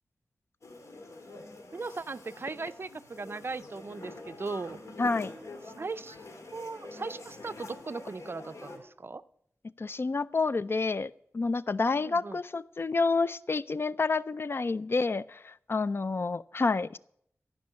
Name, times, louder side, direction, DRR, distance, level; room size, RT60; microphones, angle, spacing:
sound 1, 0.6-8.8, left 2 dB, 80° left, 2.3 m, -46 dB
voice 1, 1.7-4.8 5.7-6.2 6.5-9.2 12.0-12.4, right 4 dB, 50° right, 14 dB, 0.5 m, -38 dB
voice 2, 5.0-5.3 9.8-17.0, left 3 dB, 50° left, 17 dB, 0.4 m, -29 dB
14.5 x 5.5 x 9.5 m, 0.69 s
wide cardioid pair, 95°, 5 cm